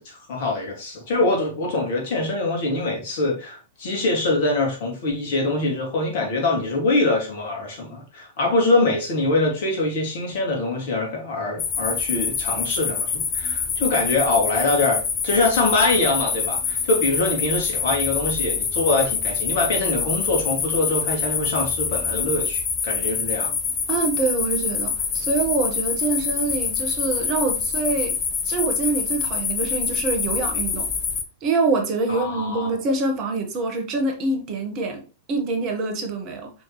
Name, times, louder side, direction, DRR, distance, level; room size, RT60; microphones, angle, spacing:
voice 1, 0.0-23.5 32.1-32.7, left 2 dB, 55° left, 2.6 m, -24 dB
sound 1, 11.6-31.2, left 6 dB, 30° left, 1.4 m, -26 dB
voice 2, 23.9-28.2 28.4-30.9 31.4-35.0 35.3-36.5, right 3 dB, 40° right, 1.7 m, -25 dB
6.4 x 5.2 x 3.2 m
figure-of-eight pair, 100°, 0 cm